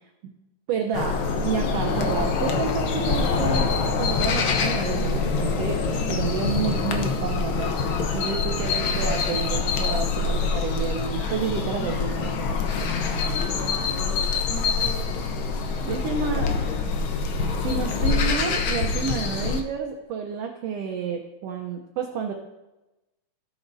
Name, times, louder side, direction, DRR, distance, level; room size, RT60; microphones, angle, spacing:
voice 1, 0.7-7.7 8.1-12.3 15.9-16.4 17.6-22.3, right 6 dB, 75° right, 3 dB, 1.5 m, -30 dB
sound 1, 0.9-19.6, left 4 dB, 90° left, 1.1 m, -25 dB
voice 2, 11.1-12.0 13.3-15.3 15.8-17.3, left 2 dB, 45° left, -6 dB, 2.9 m, -40 dB
17.0 x 6.3 x 2.6 m, 1.0 s
omnidirectional pair, 3.4 m